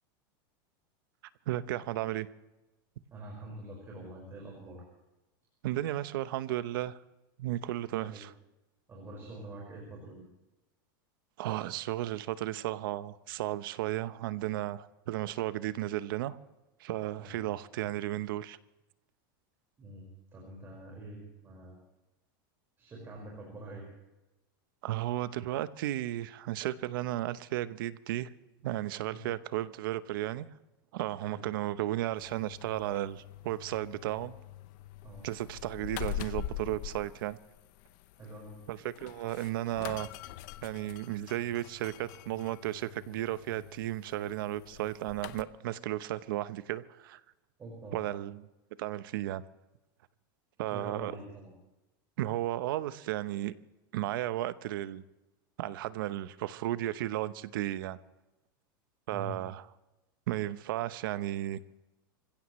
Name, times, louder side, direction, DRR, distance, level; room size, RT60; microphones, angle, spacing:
voice 1, 1.5-2.3 5.6-7.0 7.4-8.3 11.4-16.4 16.8-18.6 24.8-28.3 28.6-30.5 30.9-34.3 35.2-37.4 38.7-40.1 40.6-47.2 47.9-48.5 48.8-49.4 50.6-51.1 52.2-53.5 53.9-55.0 55.6-58.0 59.1-59.6 60.3-61.6, right 14 dB, 70° right, 14 dB, 0.9 m, -34 dB
voice 2, 3.1-4.8 8.0-8.2 8.9-10.2 17.2-17.5 19.8-21.8 22.8-23.9 29.1-29.2 31.2-31.5 35.0-35.3 38.1-38.6 47.6-48.1 50.6-51.5 59.1-59.4, right 1 dB, 20° right, -2 dB, 5.2 m, -45 dB
sound 1, 32.2-45.4, left 12 dB, 60° left, 0.8 m, -44 dB
26.5 x 16.0 x 3.2 m, 1.0 s
supercardioid pair, 150°, 12 cm